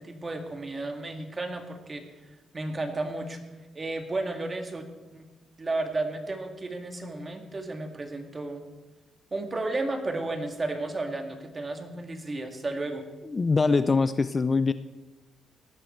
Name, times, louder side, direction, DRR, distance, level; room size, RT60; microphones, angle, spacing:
voice 1, 0.0-2.0 2.5-3.4 3.7-5.2 5.6-8.6 9.3-13.0, right 2 dB, 25° right, 5 dB, 2.2 m, -33 dB
voice 2, 13.3-14.7, left 4 dB, 30° left, 13 dB, 0.5 m, -23 dB
17.5 x 12.0 x 4.5 m, 1.1 s
cardioid pair, 90°, 0 cm